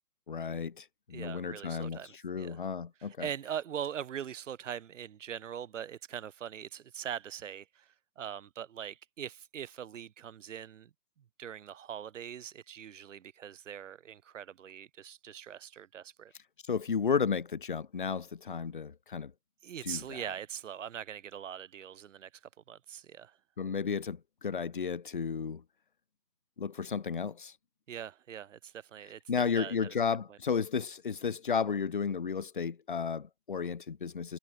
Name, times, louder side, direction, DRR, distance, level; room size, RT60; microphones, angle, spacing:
voice 1, 0.3-2.0 2.2-3.3 16.7-19.3 19.8-20.0 23.6-25.6 26.6-27.5 29.3-34.4, left 6 dB, 35° left, 0.5 m, -33 dB
voice 2, 1.1-2.6 3.0-10.9 11.4-16.3 19.6-22.3 22.7-23.4 27.9-30.0 30.3-30.4, right 9 dB, 50° right, 1.4 m, -42 dB
hypercardioid pair, 150°, 49 cm